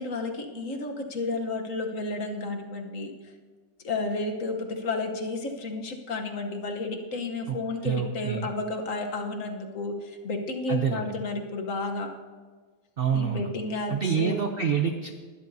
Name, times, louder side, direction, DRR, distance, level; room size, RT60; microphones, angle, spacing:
voice 1, 0.0-3.3 3.8-12.1 13.1-14.4, left 2 dB, 50° left, 3 dB, 1.3 m, -32 dB
voice 2, 7.8-8.5 10.7-11.1 13.0-13.5 13.9-15.1, right 7 dB, 90° right, 5 dB, 0.5 m, -27 dB
20.0 x 12.0 x 2.7 m, 1.5 s
omnidirectional pair, 1.9 m